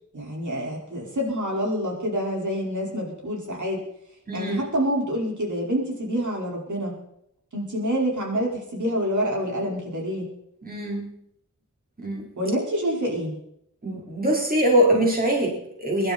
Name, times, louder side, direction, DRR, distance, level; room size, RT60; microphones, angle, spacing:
voice 1, 0.1-3.8 4.3-7.0 7.5-10.3 12.4-13.3, equal, 70° right, -2 dB, 5.1 m, -27 dB
voice 2, 4.3-4.6 10.6-11.1 12.0-12.3 13.8-16.1, right 1 dB, 30° right, -2 dB, 4.3 m, -23 dB
22.5 x 11.5 x 4.4 m, 0.76 s
wide cardioid pair, 80°, 31 cm